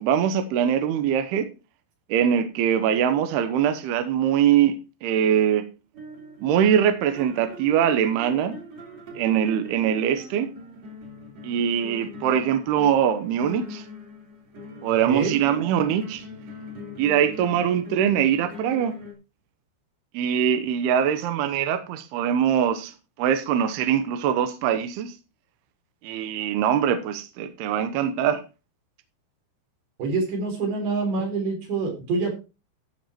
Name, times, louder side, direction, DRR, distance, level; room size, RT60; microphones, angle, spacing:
voice 1, 0.0-1.5 2.1-4.8 5.0-5.7 6.4-8.6 9.2-10.5 11.4-13.8 14.8-16.2 17.0-18.9 20.1-25.1 26.0-28.4, right 9 dB, 75° right, 2.5 m, -22 dB
sound 1, 5.9-19.1, left 1 dB, 40° right, 3.2 m, -42 dB
voice 2, 14.9-15.4 30.0-32.3, right 4 dB, 60° right, 5.9 m, -26 dB
14.5 x 6.0 x 4.4 m
omnidirectional pair, 5.6 m